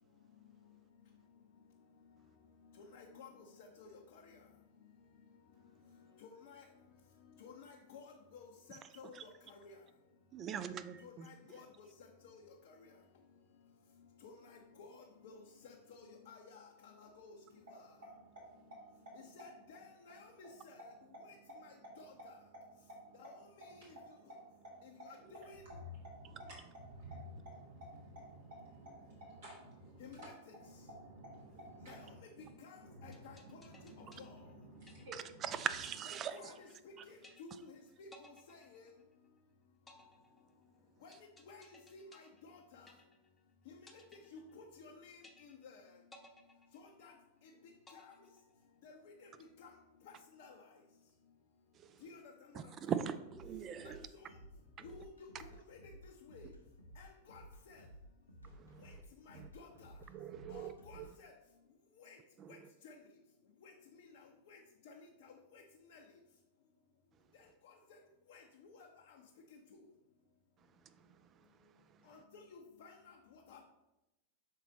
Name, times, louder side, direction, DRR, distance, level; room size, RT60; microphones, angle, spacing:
voice 1, 2.8-3.3 3.6-4.2 6.2-6.6 7.4-9.8 11.0-11.9 12.2-12.4 12.7-12.8 14.2-15.0 15.2-17.4 17.7-17.9 19.1-20.9 21.6-22.1 23.2-23.3 23.6-23.8 24.8-24.9 25.3-25.7 30.0-30.5 31.8-32.1 32.6-33.4 34.2-34.3 36.1-38.9 41.0-41.1 41.5-42.9 43.7-43.8 44.3-45.8 46.7-47.1 47.9-48.1 48.8-49.3 49.6-49.7 50.4-50.6 52.0-52.2 52.9-53.0 53.8-54.3 54.8-55.3 55.7-55.8 56.0-56.5 57.0-57.8 58.8-59.0 59.3-59.9 60.5-61.3 62.0-62.2 62.5-62.6 62.8-62.9 63.6-63.7 64.0-64.2 64.5-64.6 64.9-65.0 65.2-65.6 65.9-66.0 68.3-68.4 69.1-69.2 72.1-73.2 73.5-73.6, left 4 dB, 55° left, 0 dB, 0.7 m, -55 dB
voice 2, 10.3-11.3 35.6-36.4 51.8-52.0 52.5-54.0 58.4-58.8 59.3-59.5 60.1-60.7 61.0-61.1 62.4-62.5, right 8 dB, 30° right, 11 dB, 0.4 m, -41 dB
voice 3, 17.5-30.3 30.6-35.9, equal, 55° right, -3 dB, 1.4 m, -54 dB
sound 1, 33.1-35.4 35.9-36.9 37.2-37.8 38.1-39.4 39.9-43.4 43.9-44.9 45.2-45.8 46.1-47.4 47.9-48.9, left 2 dB, 10° left, 0.9 m, -61 dB
sound 2, 53.3-61.1, equal, 80° left, 0.9 m, -56 dB
6.4 x 4.0 x 4.0 m, 0.95 s
figure-of-eight pair, 90°, 0 cm